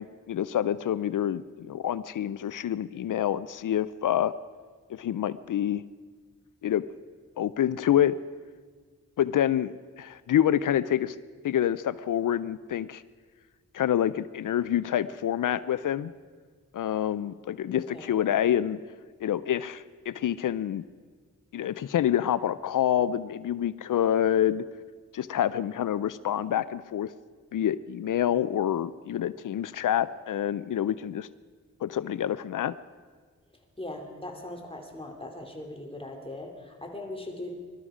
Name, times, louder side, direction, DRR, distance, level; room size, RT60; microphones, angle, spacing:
voice 1, 0.0-4.3 4.9-5.8 6.6-6.8 7.4-8.1 9.2-11.2 11.4-13.0 13.7-16.1 16.7-18.8 19.2-20.8 21.5-24.6 25.1-27.1 27.5-31.3 31.8-32.7, left 10 dB, 85° left, 16 dB, 0.5 m, -27 dB
voice 2, 17.8-18.1 33.8-37.5, left 1 dB, 20° left, 1 dB, 2.7 m, -40 dB
21.0 x 12.5 x 4.9 m, 1.5 s
cardioid pair, 60°, 31 cm